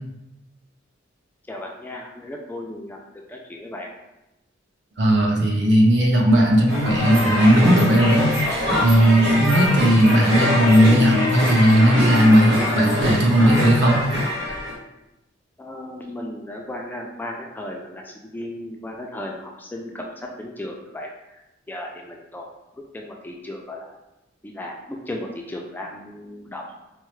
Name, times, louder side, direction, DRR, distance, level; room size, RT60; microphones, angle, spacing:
voice 1, 1.5-3.0 3.3-3.9 15.6-21.1 21.7-22.5 22.9-23.9 24.4-26.6, left 1 dB, 10° left, 0 dB, 0.3 m, -35 dB
voice 2, 5.0-8.3 8.8-14.0, right 1 dB, 65° right, -1 dB, 0.8 m, -16 dB
sound 1, 6.7-14.7, left 1 dB, 85° right, 1.1 m, -24 dB
4.5 x 2.0 x 3.1 m, 0.93 s
head